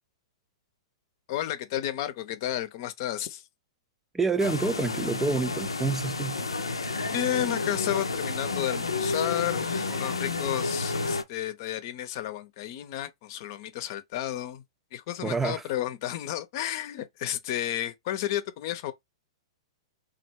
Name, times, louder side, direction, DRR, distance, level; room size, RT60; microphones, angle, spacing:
voice 1, 1.3-3.5 7.1-14.6 14.9-18.9, left 12 dB, 50° left, 0.7 m, -32 dB
voice 2, 4.1-6.4 15.2-15.6, right 4 dB, 10° right, 0.3 m, -27 dB
sound 1, 4.4-11.2, left 3 dB, 85° left, 0.6 m, -30 dB
3.1 x 2.5 x 4.4 m
figure-of-eight pair, 110°, 3 cm